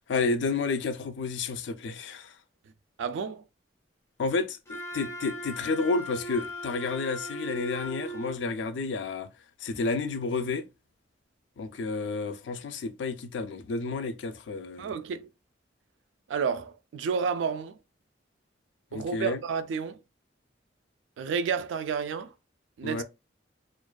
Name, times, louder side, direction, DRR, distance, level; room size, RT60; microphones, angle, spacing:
voice 1, 0.1-2.3 4.2-9.3 9.6-10.6 11.6-14.9 18.9-19.4 22.8-23.0, left 4 dB, 75° left, 0.4 m, -31 dB
voice 2, 3.0-3.4 14.8-15.3 16.3-17.8 18.9-20.0 21.2-22.3 22.8-23.0, right 6 dB, 85° right, 0.3 m, -30 dB
Wind instrument woodwind instrument, 4.7-8.4, equal, 15° left, 0.5 m, -38 dB
2.4 x 2.2 x 2.2 m
head